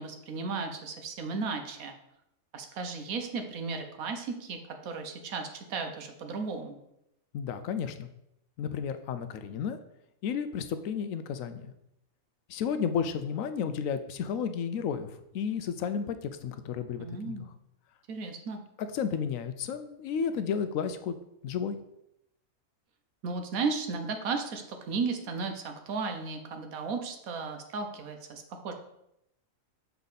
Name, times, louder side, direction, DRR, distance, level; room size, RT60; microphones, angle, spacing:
voice 1, 0.0-1.9 2.5-6.8 17.0-17.5 18.1-18.6 23.2-28.7, right 4 dB, 75° right, 6 dB, 1.3 m, -35 dB
voice 2, 7.3-8.1 8.6-9.8 10.2-11.7 12.5-17.4 18.8-21.2 21.4-21.8, left 7 dB, 75° left, 10 dB, 0.9 m, -32 dB
6.7 x 4.7 x 4.0 m, 0.82 s
omnidirectional pair, 1.5 m